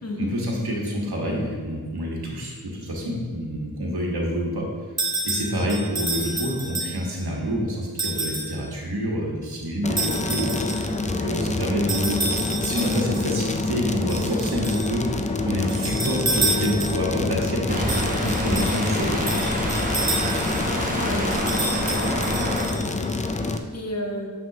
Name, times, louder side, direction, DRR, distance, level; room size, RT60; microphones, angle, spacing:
voice 1, 0.2-4.6 5.2-12.2 12.6-15.1 15.4-17.9 18.2-19.3, equal, 80° right, -2 dB, 1.4 m, -27 dB
sound 1, 5.0-7.2 8.0-8.6 10.0-11.0 11.9-13.3 14.1-14.9 15.7-17.1 17.9-20.7 21.3-23.1, right 2 dB, 45° right, 1.6 m, -29 dB
sound 2, 9.8-23.6, left 3 dB, 20° left, 0.4 m, -27 dB
sound 3, 17.7-22.7, equal, 20° right, 1.1 m, -28 dB
voice 2, 21.0-21.5 21.9-22.1 23.4-24.3, left 1 dB, 40° left, 0 dB, 1.2 m, -32 dB
6.9 x 6.0 x 2.7 m, 1.5 s
wide cardioid pair, 65°, 38 cm